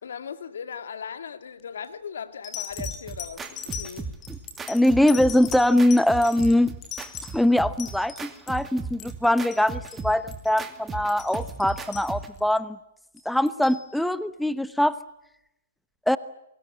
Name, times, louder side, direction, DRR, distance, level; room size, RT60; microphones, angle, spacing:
voice 1, 0.0-4.1, left 7 dB, 70° left, 2.3 m, -38 dB
sound 1, 1.6-1.9 2.4-8.6 8.9-9.6 9.9-10.0 10.3-10.5 10.9-12.5 13.2-13.8 14.7-14.8, left 9 dB, 30° left, 6.2 m, -39 dB
sound 2, 2.8-12.4, right 5 dB, 15° right, 2.5 m, -37 dB
voice 2, 4.7-6.7 7.3-12.8 13.2-14.9 16.1-16.2, left 1 dB, ahead, 1.0 m, -22 dB
28.5 x 22.5 x 7.5 m
hypercardioid pair, 125°, 0 cm